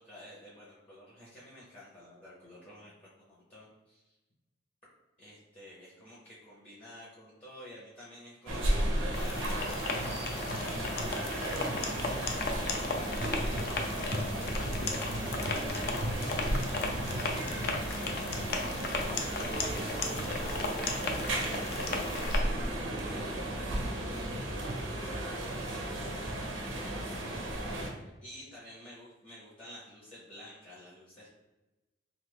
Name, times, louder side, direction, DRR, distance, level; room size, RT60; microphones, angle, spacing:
voice 1, 0.0-4.1 5.2-9.5 11.6-18.3 18.7-24.4 25.1-31.3, equal, 35° left, -8 dB, 0.7 m, -52 dB
sound 1, 8.5-27.9, right 1 dB, 85° right, 0.6 m, -34 dB
sound 2, 9.1-22.4, left 3 dB, 50° left, 0.4 m, -36 dB
sound 3, 11.7-24.4, right 1 dB, 35° right, 0.4 m, -46 dB
3.0 x 2.4 x 3.4 m, 1.0 s
head